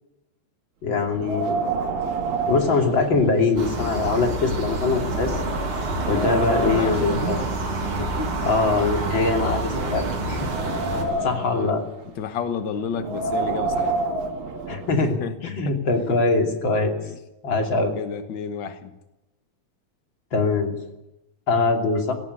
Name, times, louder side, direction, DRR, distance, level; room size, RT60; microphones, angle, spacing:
voice 1, 0.8-1.6 2.5-5.4 6.1-7.4 8.4-10.4 11.2-11.8 14.7-16.9 17.4-17.9 20.3-20.7 21.5-22.1, left 3 dB, 35° left, 3 dB, 3.2 m, -22 dB
Wind, 1.1-3.7 4.1-4.2 4.9-5.0 5.4-7.1 7.9-9.4 10.0-11.6 12.9-15.0, right 3 dB, 80° right, 3.8 m, -28 dB
sound 1, 3.6-11.0, right 2 dB, 40° right, 3.5 m, -27 dB
voice 2, 6.1-7.5 8.0-8.4 9.8-10.0 10.9-11.7 12.2-13.9 15.2-15.3 15.7-15.8 17.0-17.1 18.0-18.9, left 6 dB, 75° left, 9 dB, 1.0 m, -31 dB
17.0 x 16.5 x 9.6 m, 0.96 s
omnidirectional pair, 3.9 m